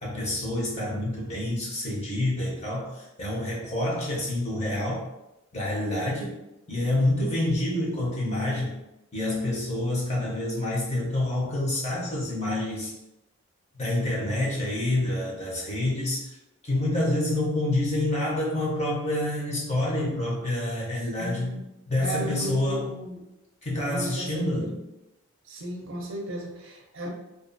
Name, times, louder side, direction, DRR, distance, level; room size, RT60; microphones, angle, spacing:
voice 1, 0.0-5.0 5.5-6.3 6.7-8.7 9.1-12.9 13.7-16.4 16.6-21.5 21.9-22.9 23.6-24.8, left 1 dB, 30° left, -5 dB, 0.7 m, -27 dB
voice 2, 21.2-21.6 22.0-23.3 23.8-24.7 25.4-27.1, right 1 dB, 60° right, 0 dB, 0.5 m, -35 dB
2.4 x 2.3 x 2.5 m, 0.93 s
head